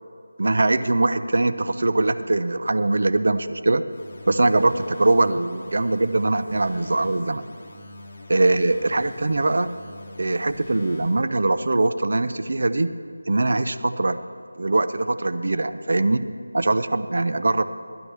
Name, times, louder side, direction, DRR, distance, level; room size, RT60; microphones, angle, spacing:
voice 1, 0.4-3.8 4.3-7.4 8.3-9.8 10.2-12.9 13.3-14.2 14.6-16.3 16.5-17.6, right 2 dB, 60° right, 11 dB, 0.5 m, -22 dB
sound 1, 3.9-11.3, left 1 dB, 35° left, 1.7 m, -43 dB
16.0 x 11.0 x 3.4 m, 2.2 s
figure-of-eight pair, 170°, 0 cm